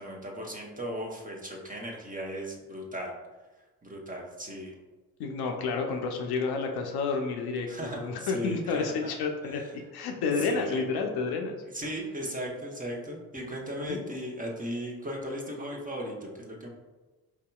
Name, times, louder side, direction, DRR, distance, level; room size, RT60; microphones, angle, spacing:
voice 1, 0.0-3.1 3.8-4.7 7.7-9.1 9.4-9.7 10.4-10.8 11.7-16.7, equal, 20° right, -2 dB, 0.9 m, -37 dB
voice 2, 5.2-11.6 13.8-14.1, left 4 dB, 60° left, 3 dB, 0.6 m, -30 dB
4.5 x 2.7 x 2.3 m, 1.2 s
hypercardioid pair, 45°, 43 cm